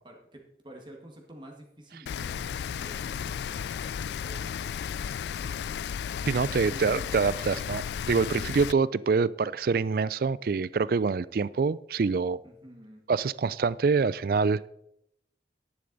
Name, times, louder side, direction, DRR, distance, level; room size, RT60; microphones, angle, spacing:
voice 1, 0.0-5.8 6.2-7.1 8.4-8.8 12.4-13.0, right 1 dB, 25° right, 1.6 m, -50 dB
Rain, 2.1-8.7, left 8 dB, 70° left, 0.3 m, -34 dB
voice 2, 6.3-12.4 13.1-14.7, right 4 dB, 55° right, 0.3 m, -26 dB
11.0 x 10.5 x 3.9 m
head